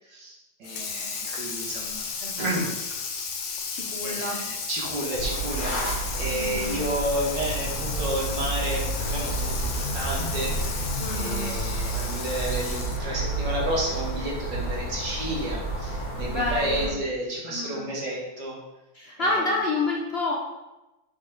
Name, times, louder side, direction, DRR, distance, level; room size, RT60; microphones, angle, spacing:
voice 1, 0.0-2.1 2.4-2.7 4.0-18.6 19.2-19.4, right 1 dB, 80° right, -4 dB, 2.3 m, -31 dB
Water tap faucet / Sink (filling or washing), 0.6-13.1, left 5 dB, 85° left, 1.5 m, -34 dB
voice 2, 2.2-2.7 3.4-4.4 6.3-6.9 11.0-11.5 16.2-16.9 17.5-17.9 18.9-20.3, left 2 dB, 50° left, -2 dB, 0.8 m, -29 dB
sound 1, 5.1-16.9, right 2 dB, 20° left, 1.2 m, -30 dB
6.4 x 5.1 x 3.7 m, 1.0 s
omnidirectional pair, 1.9 m